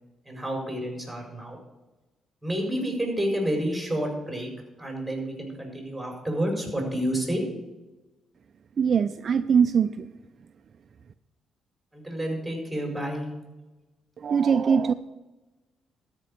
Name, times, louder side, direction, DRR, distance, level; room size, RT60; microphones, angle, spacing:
voice 1, 0.2-1.6 2.4-4.5 4.8-7.4 11.9-13.3, equal, ahead, 1 dB, 4.7 m, -29 dB
voice 2, 8.8-10.1 14.2-14.9, right 6 dB, 50° right, 10 dB, 0.5 m, -22 dB
13.0 x 5.3 x 8.4 m, 1.1 s
cardioid pair, 90°, 0 cm